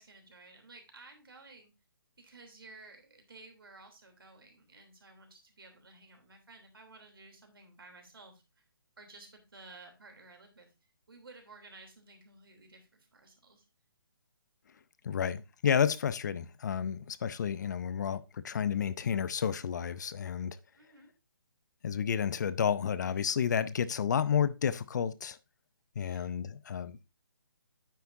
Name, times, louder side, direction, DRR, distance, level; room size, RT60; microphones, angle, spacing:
voice 1, 0.0-1.7 2.2-8.6 9.0-10.7 11.1-13.6 20.8-21.1 26.0-26.4, right 3 dB, 70° right, 3.2 m, -54 dB
voice 2, 15.0-20.6 21.8-25.4 26.0-27.0, left 7 dB, 50° left, 0.7 m, -31 dB
9.3 x 8.1 x 2.7 m
figure-of-eight pair, 145°, 12 cm